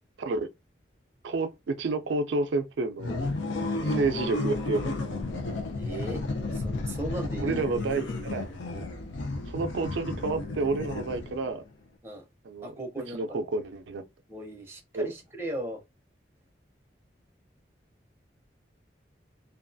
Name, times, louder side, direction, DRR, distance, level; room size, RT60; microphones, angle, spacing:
voice 1, 1.2-3.2 3.8-4.8 7.4-8.5 9.5-11.6 12.4-12.7 13.1-14.0 14.9-15.1, right 3 dB, 80° right, 0.4 m, -29 dB
sound 1, 3.0-11.5, left 2 dB, 85° left, 0.6 m, -32 dB
voice 2, 5.8-6.2 6.5-7.7 12.0-12.2 12.6-13.4 14.3-15.8, right 1 dB, 15° right, 0.6 m, -37 dB
2.5 x 2.3 x 2.5 m
head